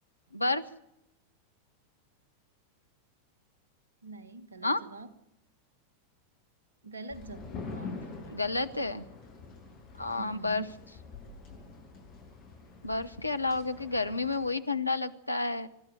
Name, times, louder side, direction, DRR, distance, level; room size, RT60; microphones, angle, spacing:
voice 1, 0.3-0.6 4.6-4.8 8.3-9.1 10.0-10.6 12.8-15.7, left 3 dB, 85° left, 10 dB, 0.9 m, -30 dB
voice 2, 4.0-5.1 6.8-7.4 7.7-8.0 10.2-10.8, right 3 dB, 75° right, 13 dB, 1.4 m, -44 dB
sound 1, 7.1-14.6, left 4 dB, 45° left, 7.9 m, -45 dB
25.5 x 13.0 x 9.3 m, 0.85 s
figure-of-eight pair, 90°, 0 cm